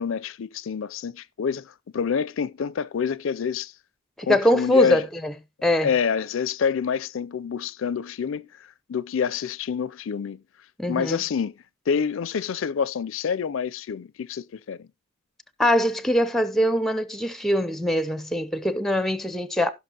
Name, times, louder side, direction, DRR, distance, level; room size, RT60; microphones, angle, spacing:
voice 1, 0.0-3.7 4.2-5.0 5.8-10.4 10.9-11.5 11.9-14.9, left 6 dB, 70° left, 0.4 m, -27 dB
voice 2, 4.2-5.3 5.6-5.9 10.8-11.2 15.6-19.7, equal, ahead, 0.5 m, -23 dB
16.5 x 6.0 x 2.9 m
head